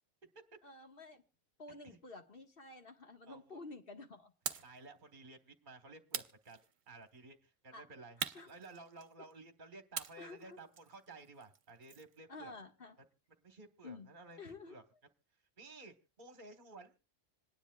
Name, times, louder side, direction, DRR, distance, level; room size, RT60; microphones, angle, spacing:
voice 1, 0.6-1.2 1.6-4.3 7.7-7.9 8.2-8.5 10.2-10.6 12.3-12.9 13.8-14.1 14.4-14.8, left 3 dB, 50° left, 4 dB, 1.7 m, -51 dB
voice 2, 3.3-3.6 4.6-8.2 8.4-12.5 13.4-14.4 14.7-14.8 15.6-17.0, right 3 dB, 40° right, 7 dB, 1.4 m, -54 dB
sound 1, 4.5-4.8 6.1-7.0 8.2-9.3 9.9-12.2, right 7 dB, 65° right, 1.1 m, -44 dB
26.5 x 10.0 x 2.3 m, 0.29 s
omnidirectional pair, 1.3 m